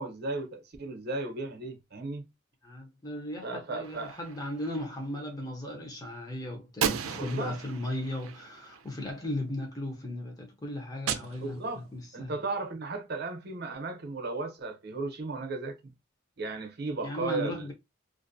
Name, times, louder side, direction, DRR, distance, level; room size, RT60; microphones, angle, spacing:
voice 1, 0.0-2.3 3.4-4.2 7.2-7.6 11.4-11.8 12.1-15.9 16.4-17.7, right 3 dB, 50° right, 0.7 m, -35 dB
voice 2, 2.6-12.3 17.0-17.7, left 1 dB, 20° left, 0.7 m, -36 dB
Gunshot gunfire, 3.8-4.8 6.8-9.2 11.1-12.1, right 7 dB, 90° right, 0.4 m, -36 dB
2.5 x 2.1 x 2.6 m
head